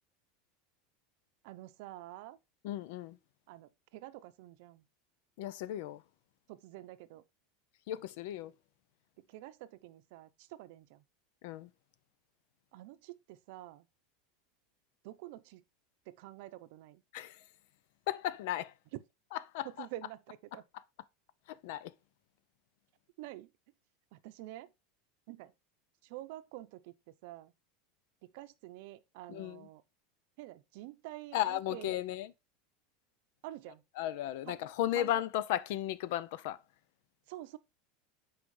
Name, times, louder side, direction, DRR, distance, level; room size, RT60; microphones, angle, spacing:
voice 1, 1.4-2.4 3.5-4.8 6.5-7.2 9.3-11.0 12.7-13.8 15.0-15.6 16.1-17.0 19.6-20.6 23.2-23.5 24.1-24.7 25.3-25.5 26.0-26.9 27.2-27.5 28.3-29.8 30.4-32.0 33.4-33.8 34.5-34.6 34.9-35.1 37.3-37.6, right 15 dB, 60° right, 0.6 m, -48 dB
voice 2, 2.6-3.2 5.4-6.0 7.9-8.5 11.4-11.7 17.1-17.4 18.1-18.7 19.3-19.9 21.5-21.9 29.3-29.7 31.3-32.3 34.0-36.6, left 13 dB, 65° left, 0.5 m, -35 dB
8.4 x 4.8 x 3.2 m
supercardioid pair, 150°, 0 cm